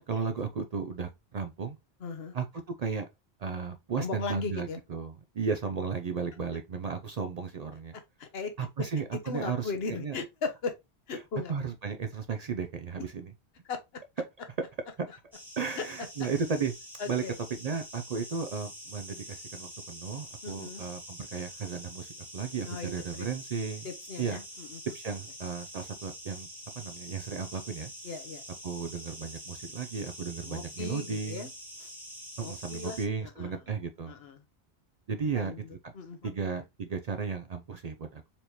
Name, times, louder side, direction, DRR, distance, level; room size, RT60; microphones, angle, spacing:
voice 1, 0.1-1.8 2.3-2.5 2.8-3.1 3.4-7.9 8.6-10.2 11.5-13.3 15.0-15.1 15.6-16.7 17.1-17.2 17.5-23.9 24.2-24.4 24.9-26.5 26.8-27.9 28.6-31.4 32.4-34.2 35.1-35.5 35.8-35.9 36.2-38.2, right 5 dB, 55° right, 0.5 m, -34 dB
voice 2, 2.0-2.3 4.0-4.8 8.2-8.5 9.3-10.7 11.1-11.5 13.7-13.8 15.1-15.2 15.8-15.9 17.0-17.3 20.4-20.8 22.6-23.3 23.8-24.8 28.0-28.4 30.4-31.5 31.8-31.9 32.4-33.6 34.1-34.4 35.3-36.3, left 4 dB, 75° left, 1.1 m, -37 dB
sound 1, 15.3-33.1, equal, ahead, 1.2 m, -46 dB
4.2 x 2.9 x 3.1 m
omnidirectional pair, 1.0 m